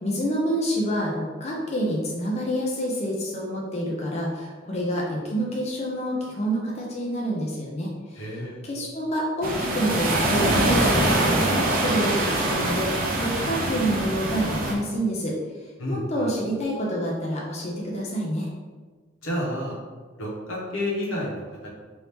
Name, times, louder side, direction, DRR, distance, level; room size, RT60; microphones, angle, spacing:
voice 1, 0.0-8.2 8.6-15.4 15.9-18.5, equal, 35° left, -3 dB, 0.5 m, -28 dB
voice 2, 8.2-8.6 15.8-16.3 19.2-19.8 20.2-21.7, left 1 dB, 90° left, -4 dB, 1.0 m, -30 dB
sound 1, 9.4-14.7, right 1 dB, 45° right, 0.6 m, -23 dB
2.8 x 2.7 x 3.4 m, 1.4 s
head